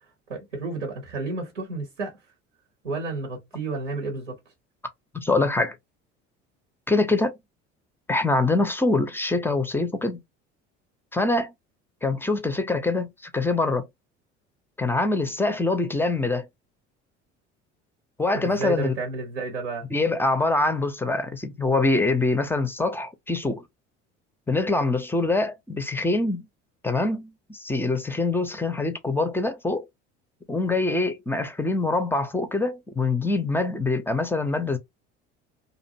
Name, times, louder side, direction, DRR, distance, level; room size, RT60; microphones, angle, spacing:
voice 1, 0.3-2.2 2.8-4.4 18.3-19.9, right 3 dB, 90° right, 0.8 m, -31 dB
voice 2, 5.1-5.8 6.9-7.3 8.1-10.2 11.1-11.5 12.0-13.9 14.8-16.5 18.2-18.9 19.9-23.6 24.5-26.5 26.8-29.9 30.5-34.8, left 2 dB, 5° left, 0.4 m, -24 dB
2.5 x 2.1 x 2.6 m
hypercardioid pair, 65°, 36 cm